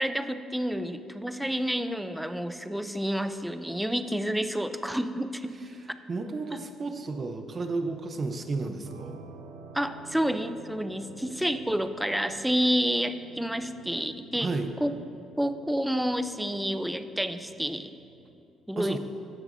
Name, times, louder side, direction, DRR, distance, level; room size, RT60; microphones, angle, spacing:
voice 1, 0.0-5.5 9.7-14.5 14.8-14.9 15.4-17.9 18.7-19.0, equal, 5° right, 10 dB, 0.4 m, -29 dB
voice 2, 6.1-9.2 14.4-14.7 18.8-19.0, right 3 dB, 40° right, 6 dB, 0.8 m, -32 dB
sound 1, 8.9-18.4, right 4 dB, 90° right, 0.8 m, -50 dB
17.0 x 5.9 x 2.7 m, 2.5 s
supercardioid pair, 75°, 0 cm